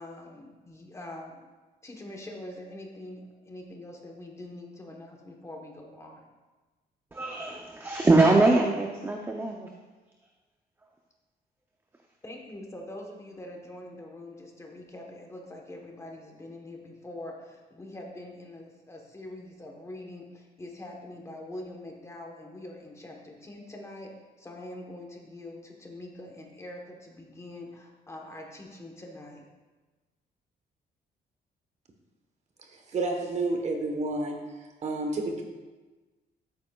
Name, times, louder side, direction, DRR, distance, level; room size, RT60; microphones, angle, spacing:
voice 1, 0.0-1.4 1.8-6.3 12.2-29.5, left 1 dB, 15° left, 1 dB, 1.1 m, -44 dB
voice 2, 7.1-9.7, right 2 dB, 15° right, 1 dB, 0.5 m, -23 dB
voice 3, 32.9-34.4 34.8-35.4, right 2 dB, 40° right, 3 dB, 1.1 m, -29 dB
13.0 x 8.9 x 2.3 m, 1.2 s
cardioid pair, 170°, 17 cm